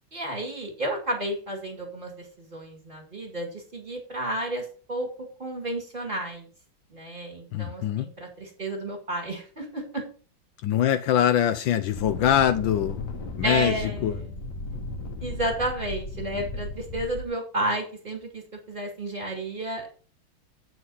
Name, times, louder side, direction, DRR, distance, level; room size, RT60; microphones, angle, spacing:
voice 1, 0.1-5.1 5.4-6.5 6.9-10.0 13.4-14.3 15.2-18.4 18.7-19.9, right 1 dB, 25° right, 2.2 m, -32 dB
voice 2, 7.5-8.1 10.6-13.1 13.4-13.7 14.0-14.1, left 10 dB, 75° left, 1.3 m, -23 dB
sound 1, 11.9-17.3, left 2 dB, 55° left, 1.9 m, -35 dB
8.2 x 4.7 x 5.4 m
omnidirectional pair, 2.2 m